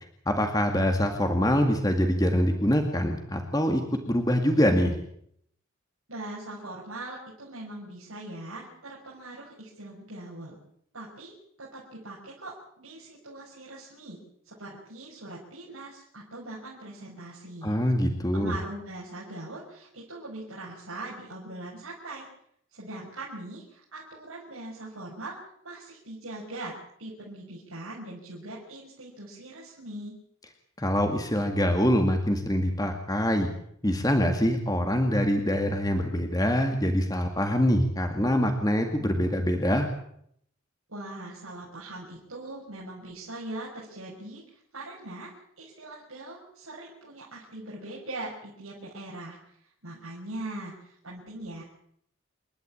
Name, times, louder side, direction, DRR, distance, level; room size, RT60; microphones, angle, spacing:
voice 1, 0.3-5.0 17.6-18.5 30.8-33.5 33.8-39.9, equal, 15° left, 5 dB, 2.0 m, -24 dB
voice 2, 6.1-10.6 10.9-17.8 18.3-22.3 22.7-25.4 25.6-30.2 40.9-51.6, right 2 dB, 80° right, -5 dB, 6.0 m, -41 dB
28.5 x 12.5 x 8.7 m, 0.69 s
head